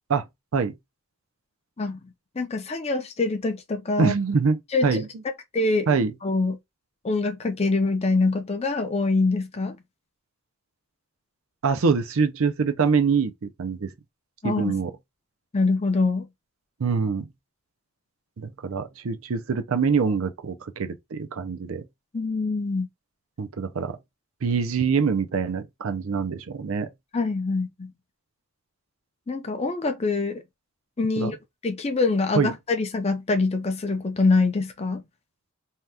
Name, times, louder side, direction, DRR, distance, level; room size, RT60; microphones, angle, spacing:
voice 1, 2.4-4.1 4.7-5.0 5.5-5.9 6.2-6.6 7.0-9.8 14.4-14.8 15.5-16.3 22.1-22.9 27.1-27.9 29.3-30.4 31.0-31.4 31.6-35.0, left 3 dB, 30° left, 0.5 m, -24 dB
voice 2, 4.0-5.1 5.9-6.1 11.6-13.9 14.4-14.9 16.8-17.3 18.4-21.8 23.4-24.0 24.4-26.9 31.2-31.3 32.4-32.5, right 5 dB, 70° right, 0.5 m, -24 dB
2.8 x 2.3 x 3.3 m
head